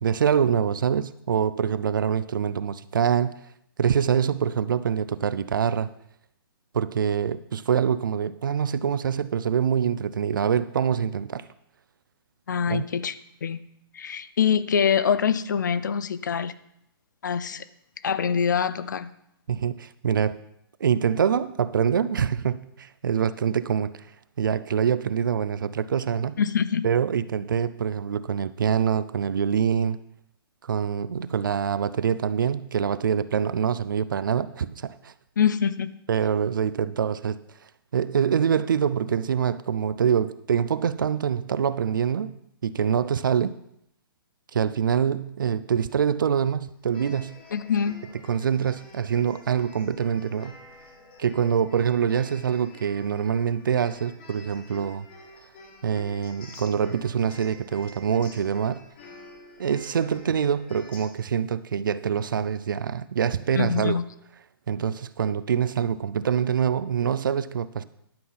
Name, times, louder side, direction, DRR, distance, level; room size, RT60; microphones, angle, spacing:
voice 1, 0.0-3.3 3.8-5.9 6.7-11.4 12.7-12.8 19.5-20.4 20.8-23.9 24.4-26.4 26.8-30.0 30.6-35.1 36.1-37.4 37.9-43.6 44.5-47.4 48.3-50.6 51.2-55.1 55.8-58.8 59.6-64.0 64.7-67.8, right 7 dB, 60° right, 0.5 m, -25 dB
voice 2, 12.5-13.1 13.4-13.6 13.9-16.5 17.2-17.6 18.0-19.1 26.4-26.9 35.4-35.9 47.5-48.0 63.6-64.0, left 7 dB, 50° left, 0.6 m, -24 dB
sound 1, 46.8-61.0, left 2 dB, 25° left, 1.5 m, -49 dB
11.5 x 5.6 x 5.8 m
hypercardioid pair, 180°, 13 cm